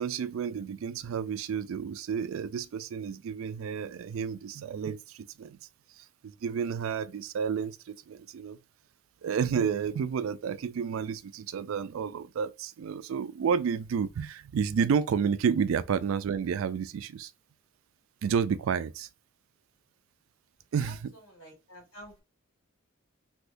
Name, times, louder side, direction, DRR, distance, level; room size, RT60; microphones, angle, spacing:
voice 1, 0.0-5.6 6.2-8.6 9.2-17.3 18.2-19.1 20.7-21.0, right 6 dB, 70° right, 0.3 m, -30 dB
voice 2, 20.7-22.2, equal, 80° left, 2.0 m, -50 dB
3.5 x 2.6 x 2.5 m
head